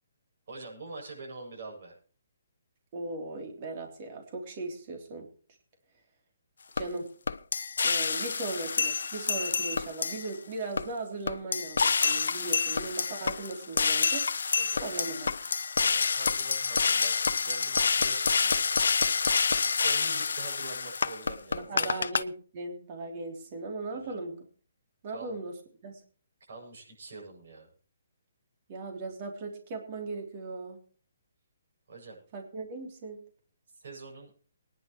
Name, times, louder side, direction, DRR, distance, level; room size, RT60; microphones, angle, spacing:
voice 1, 0.5-2.0 14.6-14.8 15.8-18.6 19.8-21.9 23.9-24.2 25.1-25.4 26.5-27.7 31.9-32.2 33.8-34.3, right 3 dB, 65° right, -1 dB, 7.6 m, -44 dB
voice 2, 2.9-5.3 6.8-7.1 7.8-15.3 21.5-24.4 25.0-25.5 25.8-26.0 28.7-30.8 32.3-33.2, right 3 dB, 40° right, 2 dB, 3.3 m, -38 dB
sound 1, 6.8-6.9 7.3-10.3 10.8-10.9 11.3-22.2, left 5 dB, 80° left, 0.5 m, -28 dB
21.5 x 10.5 x 3.1 m, 0.41 s
hypercardioid pair, 155°, 0 cm